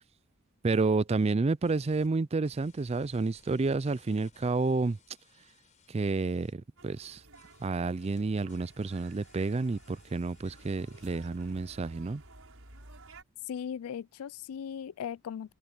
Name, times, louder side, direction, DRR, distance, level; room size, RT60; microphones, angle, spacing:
voice 1, 0.6-5.0 5.9-7.2 7.6-12.2, right 3 dB, 30° right, 0.4 m, -30 dB
sound 1, 1.6-2.1 2.4-6.5 7.3-11.7, left 5 dB, 35° left, 5.7 m, -62 dB
sound 2, 6.8-13.2, right 2 dB, 70° right, 6.9 m, -54 dB
voice 2, 13.5-15.5, left 8 dB, 85° left, 0.3 m, -38 dB
head